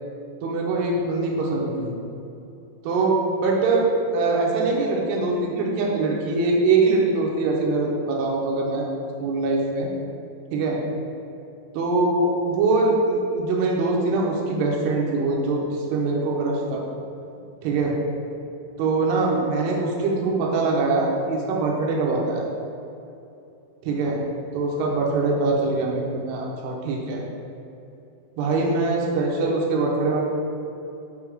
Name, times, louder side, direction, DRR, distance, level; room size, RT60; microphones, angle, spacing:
voice 1, 0.4-1.9 2.8-3.9 4.1-8.9 9.2-9.9 10.5-10.8 11.7-16.8 17.6-17.9 18.8-22.4 23.8-24.2 24.5-27.2 28.4-30.2, right 3 dB, 75° right, -2 dB, 2.5 m, -23 dB
6.7 x 3.4 x 4.9 m, 2.7 s
omnidirectional pair, 5.6 m